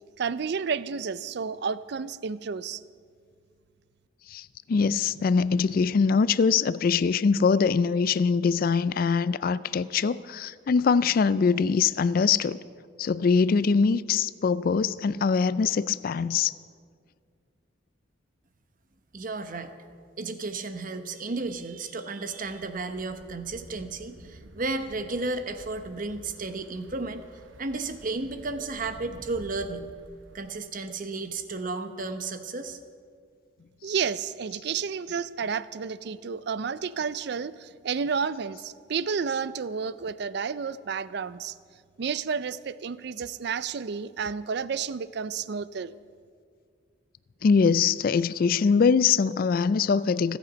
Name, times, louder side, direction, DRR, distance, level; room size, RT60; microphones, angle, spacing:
voice 1, 0.2-2.8 33.8-41.5 42.0-45.9, right 6 dB, 60° right, 0.4 m, -31 dB
voice 2, 4.3-12.6 13.0-16.5 47.4-50.4, left 5 dB, 50° left, 0.3 m, -23 dB
voice 3, 19.1-19.7 20.2-27.3 27.6-29.9 30.3-32.8, right 3 dB, 45° right, 0.9 m, -33 dB
sound 1, 22.3-30.4, right 1 dB, 90° right, 1.0 m, -50 dB
25.0 x 8.4 x 5.2 m
head